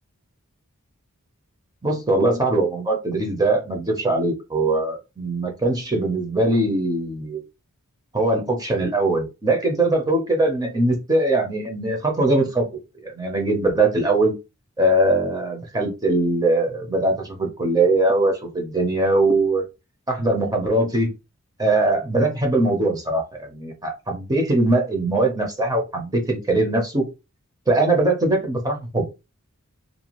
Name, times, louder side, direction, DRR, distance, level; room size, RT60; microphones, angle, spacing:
voice 1, 1.8-7.4 8.1-12.7 13.0-14.3 14.8-19.6 20.1-21.1 21.6-27.0 27.7-29.0, right 2 dB, 15° right, 0.6 m, -21 dB
2.6 x 2.2 x 2.9 m
head